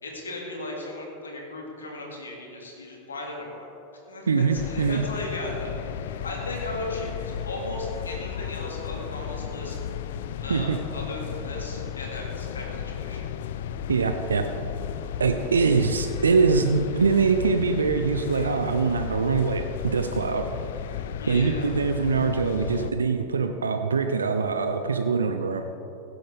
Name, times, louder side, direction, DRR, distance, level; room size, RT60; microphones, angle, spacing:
voice 1, 0.0-3.7 4.1-9.8 10.4-13.2 21.1-21.7, left 1 dB, 85° left, -1 dB, 2.2 m, -36 dB
voice 2, 4.3-5.0 10.5-10.8 13.9-14.5 15.2-20.5 21.3-25.6, right 5 dB, 85° right, 6 dB, 0.5 m, -23 dB
sound 1, 4.5-22.9, left 9 dB, 65° left, 0.4 m, -34 dB
16.5 x 7.8 x 3.5 m, 2.8 s
hypercardioid pair, 90°, 0 cm